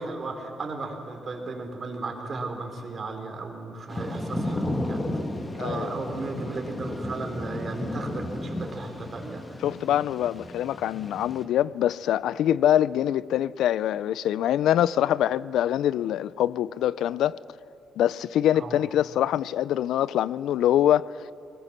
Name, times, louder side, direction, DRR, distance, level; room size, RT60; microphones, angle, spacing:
voice 1, 0.0-5.1 5.6-9.4 15.0-15.3 18.5-18.8, right 3 dB, 40° right, 3.6 m, -35 dB
Thunder / Rain, 3.9-11.5, left 1 dB, 20° left, 1.7 m, -33 dB
voice 2, 5.6-5.9 9.6-17.4 18.0-21.1, left 11 dB, 80° left, 0.4 m, -24 dB
20.0 x 18.5 x 7.3 m
cardioid pair, 90°, 0 cm